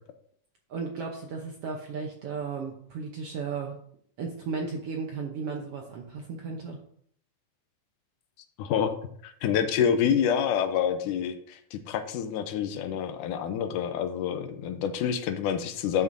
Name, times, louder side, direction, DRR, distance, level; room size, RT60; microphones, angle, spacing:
voice 1, 0.7-3.8 4.2-6.8, right 5 dB, 70° right, 1 dB, 1.4 m, -35 dB
voice 2, 8.6-8.9 9.2-16.0, left 8 dB, 80° left, 9 dB, 2.1 m, -27 dB
11.0 x 7.9 x 2.7 m, 0.64 s
omnidirectional pair, 3.7 m